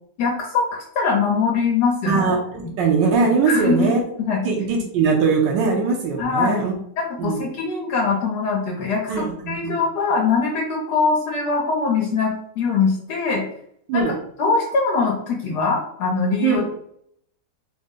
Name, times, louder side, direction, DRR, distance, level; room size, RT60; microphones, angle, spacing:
voice 1, 0.2-0.6 0.9-2.2 3.5-3.9 4.2-4.4 6.2-6.7 7.0-13.4 13.9-14.0 14.4-16.6, left 4 dB, 75° left, 0 dB, 1.2 m, -22 dB
voice 2, 2.1-4.0 4.4-6.7 7.2-7.4 9.1-9.7 13.9-14.1 16.4-16.6, right 5 dB, 85° right, 0 dB, 1.4 m, -21 dB
3.8 x 2.1 x 3.6 m, 0.68 s
omnidirectional pair, 1.9 m